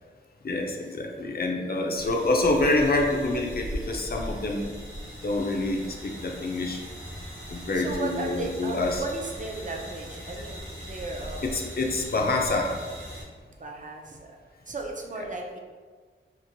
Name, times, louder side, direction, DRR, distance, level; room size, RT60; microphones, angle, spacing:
voice 1, 0.4-4.7 5.2-6.8 7.5-9.0 11.4-12.7, left 2 dB, 45° left, 1 dB, 0.4 m, -26 dB
voice 2, 1.3-1.7 7.7-11.6 13.6-14.4 14.7-15.6, right 3 dB, 40° right, 1 dB, 0.4 m, -36 dB
sound 1, 1.9-13.2, equal, 75° right, 1.0 m, -39 dB
3.0 x 2.4 x 2.6 m, 1.5 s
wide cardioid pair, 85°, 21 cm